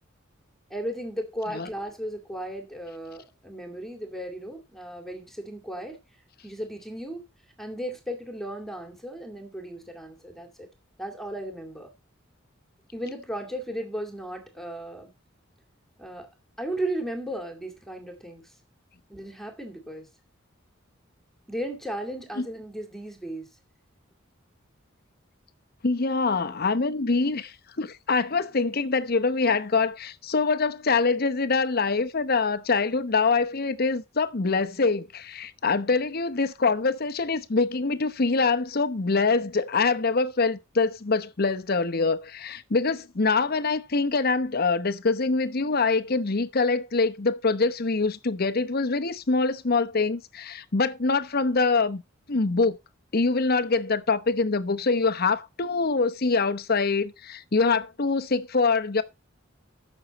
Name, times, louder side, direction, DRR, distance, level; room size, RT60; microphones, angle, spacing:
voice 1, 0.7-6.0 6.4-7.2 7.6-10.7 11.0-11.9 12.9-15.1 16.0-16.3 16.6-18.5 19.1-20.1 21.5-23.5, right 1 dB, ahead, 2.2 m, -35 dB
voice 2, 25.8-52.0 52.3-52.8 53.1-59.0, left 4 dB, 50° left, 0.9 m, -24 dB
15.0 x 6.4 x 4.1 m
head